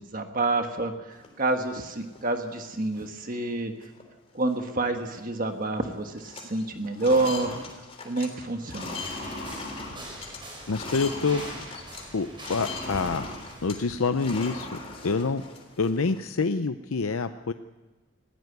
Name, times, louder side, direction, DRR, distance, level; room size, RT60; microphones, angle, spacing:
voice 1, 0.0-3.7 4.3-7.6 8.0-9.0, right 2 dB, 40° right, 5 dB, 1.4 m, -28 dB
sound 1, 1.1-2.2 2.7-2.8 3.0-3.4 3.8-4.0 4.3-5.4 5.6-5.9 6.1-12.1 12.3-16.2, left 2 dB, 30° left, 3.4 m, -39 dB
sound 2, 8.9-14.0, right 1 dB, 25° right, 5.7 m, -43 dB
voice 2, 10.7-11.4 12.1-13.3 13.6-14.7 15.0-15.4 15.8-17.5, left 4 dB, 90° left, 10 dB, 0.6 m, -26 dB
20.0 x 15.5 x 8.1 m, 1.2 s
head